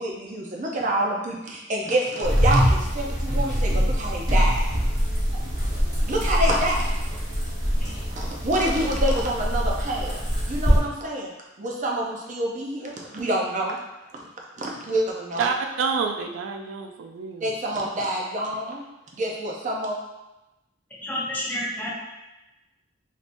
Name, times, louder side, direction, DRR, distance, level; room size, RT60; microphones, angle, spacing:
voice 1, 0.0-4.7 6.1-6.9 7.8-11.3 11.6-13.8 14.6-15.4 17.4-18.8 19.1-20.0, right 1 dB, 40° right, -1 dB, 0.5 m, -27 dB
sound 1, 2.2-10.8, equal, 20° right, 1.1 m, -23 dB
voice 2, 15.4-17.5, right 5 dB, 90° right, 3 dB, 0.3 m, -28 dB
voice 3, 21.0-21.9, left 1 dB, 10° left, -6 dB, 0.7 m, -29 dB
3.5 x 2.7 x 2.6 m, 0.99 s
head